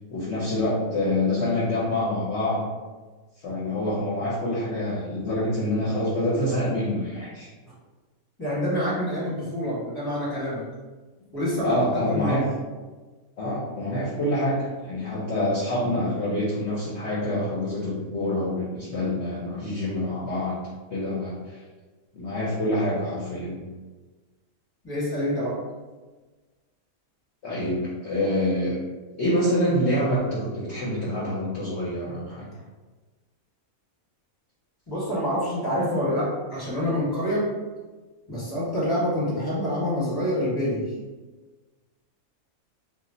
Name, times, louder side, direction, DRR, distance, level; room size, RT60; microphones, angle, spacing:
voice 1, 0.1-2.7 3.4-7.5 11.6-12.4 13.4-20.6 20.9-21.6 22.1-23.7 27.4-28.7 29.2-32.5, left 1 dB, 60° left, -7 dB, 0.8 m, -26 dB
voice 2, 8.4-10.6 11.3-12.5 24.8-25.6 34.9-37.5 38.3-40.9, equal, 20° left, -8 dB, 1.0 m, -27 dB
2.4 x 2.1 x 3.7 m, 1.3 s
omnidirectional pair, 1.5 m